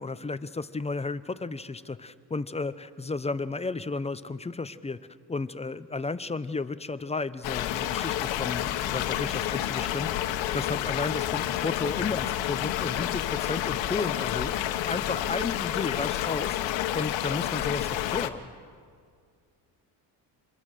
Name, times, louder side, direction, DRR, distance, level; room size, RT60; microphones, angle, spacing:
voice 1, 0.0-5.0 5.3-10.1 10.5-14.6 14.9-18.5, left 3 dB, 15° left, 14 dB, 0.6 m, -33 dB
sound 1, 7.4-18.3, left 12 dB, 85° left, 1.3 m, -29 dB
voice 2, 9.1-9.5 11.0-11.3 15.1-15.4, right 2 dB, 65° right, -1 dB, 6.4 m, -48 dB
27.0 x 22.0 x 6.5 m, 2.1 s
cardioid pair, 115°, 44 cm